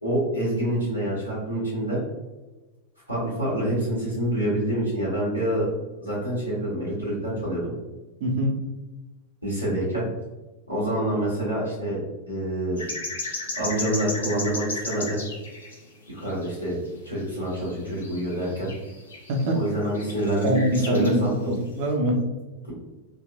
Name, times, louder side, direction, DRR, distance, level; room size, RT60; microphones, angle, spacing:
voice 1, 0.0-2.0 3.1-5.6 6.0-7.7 9.4-10.0 10.7-12.9 13.6-15.2 16.1-16.8 17.0-18.7 19.5-21.3, right 1 dB, 90° left, -8 dB, 1.3 m, -27 dB
voice 2, 8.2-8.6 19.3-19.6 20.4-22.2, equal, 45° right, 2 dB, 0.6 m, -23 dB
sound 1, 12.8-15.8 16.1-16.9 17.2-21.3 21.7-21.8, left 2 dB, 70° left, 0.7 m, -35 dB
3.3 x 2.5 x 2.5 m, 1.2 s
figure-of-eight pair, 90°, 0 cm